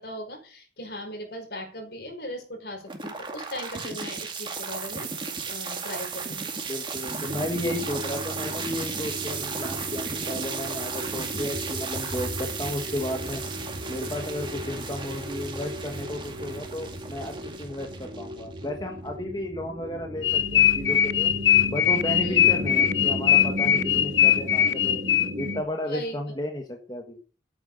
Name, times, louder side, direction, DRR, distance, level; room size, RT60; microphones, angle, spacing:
voice 1, 0.0-5.1 5.4-6.5 22.2-22.5 25.8-26.2, equal, 60° left, 3 dB, 5.1 m, -38 dB
sound 1, 2.9-18.9, right 5 dB, 25° right, 2.2 m, -35 dB
voice 2, 6.7-13.4 13.9-21.3 21.7-25.0 25.4-27.2, left 1 dB, 25° left, 2 dB, 1.6 m, -33 dB
sound 2, 7.3-25.6, equal, 55° right, 2.2 m, -36 dB
sound 3, 20.2-25.5, left 10 dB, 80° left, 0.8 m, -21 dB
13.0 x 9.3 x 6.5 m, 0.40 s
head